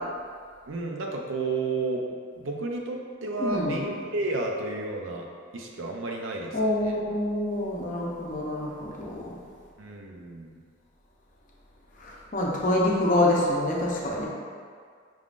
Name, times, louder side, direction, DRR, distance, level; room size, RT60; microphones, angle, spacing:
voice 1, 0.7-2.0 2.4-5.3 5.5-6.6 6.8-7.0 9.8-10.6, right 3 dB, 80° right, 1 dB, 0.5 m, -31 dB
voice 2, 3.4-3.8 6.5-9.4 12.0-14.3, left 1 dB, 40° left, -3 dB, 0.6 m, -26 dB
4.9 x 3.6 x 2.5 m, 2.1 s
head